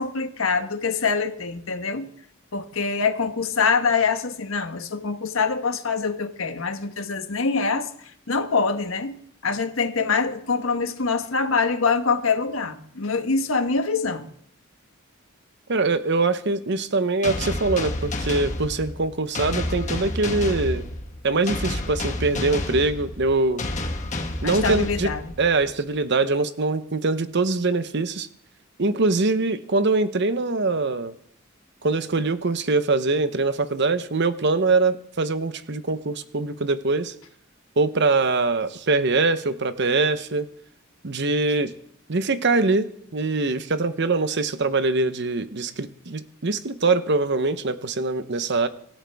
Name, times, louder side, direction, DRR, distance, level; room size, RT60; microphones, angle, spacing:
voice 1, 0.0-2.1 2.5-7.9 8.3-14.3 24.4-25.2, left 4 dB, 75° left, 7 dB, 1.3 m, -24 dB
voice 2, 15.7-20.9 21.2-23.7 24.4-25.1 25.4-28.3 28.8-31.1 31.8-37.1 37.8-40.5 41.0-41.7 42.1-48.7, right 3 dB, 55° right, 11 dB, 0.9 m, -23 dB
sound 1, 17.2-25.7, left 1 dB, 35° left, 1.5 m, -30 dB
25.0 x 13.0 x 3.5 m, 0.66 s
head